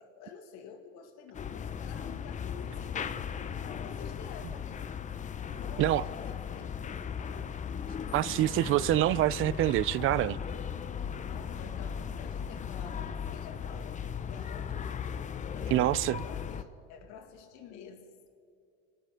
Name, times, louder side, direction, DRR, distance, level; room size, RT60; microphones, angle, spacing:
voice 1, 0.0-4.9 5.4-7.6 11.2-14.0 14.3-15.1 15.5-18.3, left 7 dB, 65° left, 2.0 m, -50 dB
sound 1, 1.3-16.6, left 7 dB, 25° left, 0.6 m, -37 dB
voice 2, 8.1-10.4 15.7-16.2, right 15 dB, 45° right, 0.4 m, -26 dB
27.0 x 9.2 x 5.7 m
supercardioid pair, 105°, 29 cm